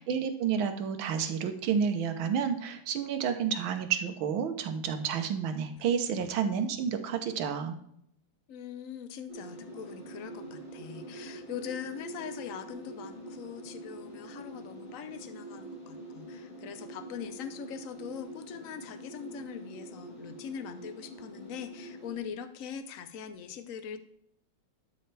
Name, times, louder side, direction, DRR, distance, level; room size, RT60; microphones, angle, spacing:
voice 1, 0.0-7.8, right 7 dB, 70° right, 7 dB, 1.7 m, -30 dB
voice 2, 8.5-24.0, left 7 dB, 65° left, 10 dB, 0.8 m, -42 dB
sound 1, 9.3-22.2, right 1 dB, 45° left, 3.3 m, -45 dB
12.0 x 5.6 x 3.4 m, 0.71 s
omnidirectional pair, 2.3 m